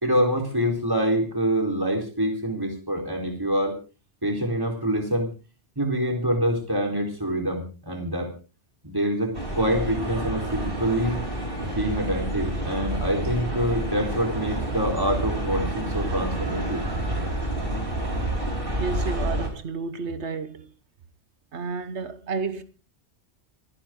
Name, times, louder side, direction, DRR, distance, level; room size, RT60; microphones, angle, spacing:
voice 1, 0.0-3.7 4.2-5.3 5.8-8.3 8.8-11.2 11.6-16.8, equal, 20° right, 4.2 m, -26 dB
sound 1, 9.3-19.5, right 1 dB, 55° right, 5.8 m, -29 dB
voice 2, 18.8-20.7 21.5-22.6, right 4 dB, 80° right, 1.5 m, -31 dB
28.0 x 10.0 x 3.8 m
omnidirectional pair, 1.1 m